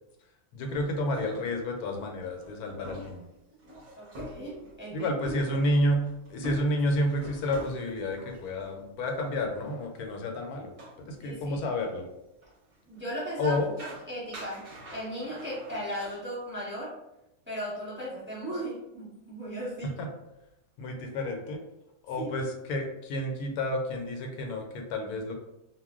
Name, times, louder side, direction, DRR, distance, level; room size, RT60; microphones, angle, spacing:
voice 1, 0.5-3.3 4.9-10.7 11.1-12.1 13.4-13.7 19.8-20.1 20.8-21.6 22.0-25.3, left 1 dB, 85° left, 3 dB, 1.1 m, -30 dB
sound 1, 0.7-8.9 9.2-9.3 10.3-10.4 10.7-11.0 11.6-11.7 12.4-13.1 13.5-16.2, equal, 40° right, 0.7 m, -45 dB
voice 2, 4.0-5.1 11.2-11.6 12.9-13.6 14.1-16.9 17.5-19.9 22.2-22.3, equal, 10° right, -8 dB, 0.9 m, -36 dB
2.3 x 2.1 x 3.5 m, 0.91 s
omnidirectional pair, 1.6 m